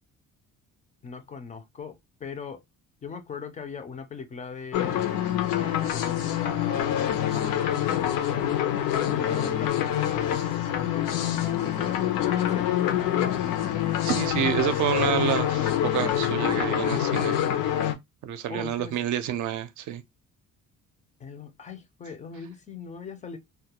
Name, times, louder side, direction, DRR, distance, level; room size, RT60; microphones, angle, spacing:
voice 1, 1.0-2.6 3.0-5.2 5.5-7.5 7.8-8.6 9.1-13.6 18.5-19.0 21.2-23.4, left 5 dB, 25° left, 0.3 m, -40 dB
sound 1, 4.7-18.0, left 11 dB, 90° left, 0.6 m, -26 dB
voice 2, 14.0-17.4 18.2-20.0, right 10 dB, 65° right, 0.5 m, -28 dB
2.2 x 2.1 x 2.8 m
cardioid pair, 180°, 32 cm